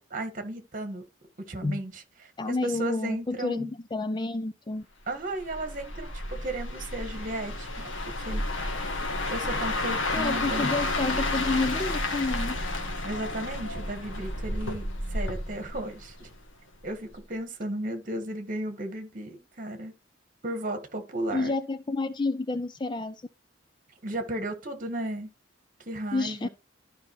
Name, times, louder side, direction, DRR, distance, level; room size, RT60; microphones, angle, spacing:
voice 1, 0.1-1.0 1.5-3.7 5.1-7.9 8.2-8.4 9.3-10.7 13.0-16.3 16.8-19.9 20.4-21.6 24.0-25.3 25.8-26.5, right 1 dB, 40° right, 1.6 m, -35 dB
voice 2, 2.4-4.9 10.1-12.6 21.3-23.2 26.1-26.5, left 3 dB, 20° left, 0.4 m, -29 dB
sound 1, 5.4-16.5 16.8-17.1, left 2 dB, 75° left, 1.6 m, -31 dB
13.0 x 5.1 x 3.1 m
head